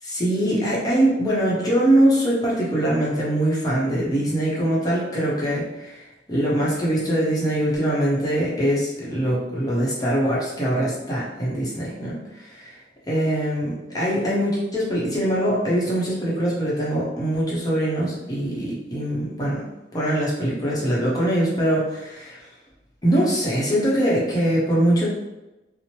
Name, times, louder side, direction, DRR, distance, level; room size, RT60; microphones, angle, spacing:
voice 1, 0.0-12.7 13.1-19.6 19.9-22.4 23.0-25.1, right 1 dB, 20° left, -6 dB, 0.7 m, -22 dB
3.0 x 2.0 x 2.8 m, 1.0 s
head